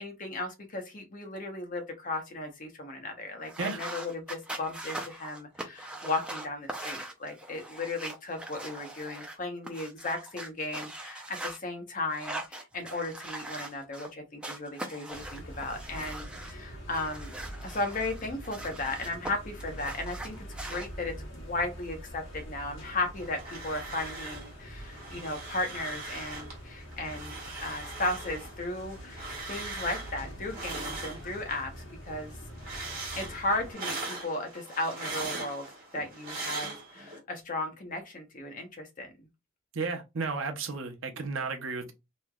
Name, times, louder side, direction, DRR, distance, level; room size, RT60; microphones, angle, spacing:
voice 1, 0.0-32.3 33.2-35.7 35.9-39.1, left 2 dB, 40° left, 0.8 m, -35 dB
sound 1, 3.4-11.6 12.1-14.1 14.4-16.5 16.9-19.3 19.6-20.9, right 1 dB, 5° right, 0.4 m, -41 dB
sound 2, 15.1-33.7, equal, 60° left, 1.3 m, -45 dB
sound 3, 23.1-24.5 24.8-26.6 26.9-31.7 32.0-37.2, right 3 dB, 40° right, 1.4 m, -40 dB
voice 2, 39.7-41.9, right 4 dB, 60° right, 0.7 m, -33 dB
3.1 x 2.8 x 2.3 m
head